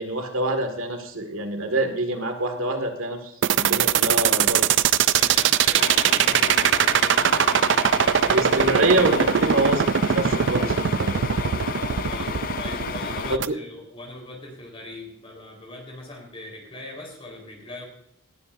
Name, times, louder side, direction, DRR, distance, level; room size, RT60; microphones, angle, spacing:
voice 1, 0.0-4.6 8.3-11.2 13.3-13.5, right 2 dB, 75° right, 5 dB, 2.0 m, -26 dB
sound 1, 3.4-13.5, right 8 dB, 60° right, 0.4 m, -20 dB
voice 2, 5.1-7.7 12.0-17.9, left 2 dB, 25° left, 0 dB, 4.2 m, -40 dB
sound 2, 5.8-13.4, left 6 dB, 40° left, 0.4 m, -32 dB
18.5 x 12.0 x 2.7 m, 0.73 s
head